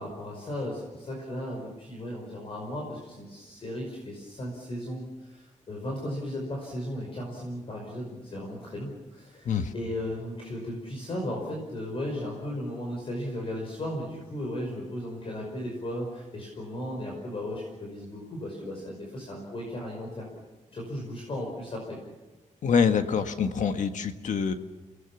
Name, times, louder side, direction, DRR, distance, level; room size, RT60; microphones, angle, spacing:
voice 1, 0.0-20.3 20.7-22.0, left 1 dB, 45° left, -1 dB, 5.4 m, -36 dB
voice 2, 22.6-24.5, left 6 dB, 75° left, 8 dB, 1.6 m, -25 dB
30.0 x 19.0 x 7.2 m, 1.1 s
wide cardioid pair, 160°, 13 cm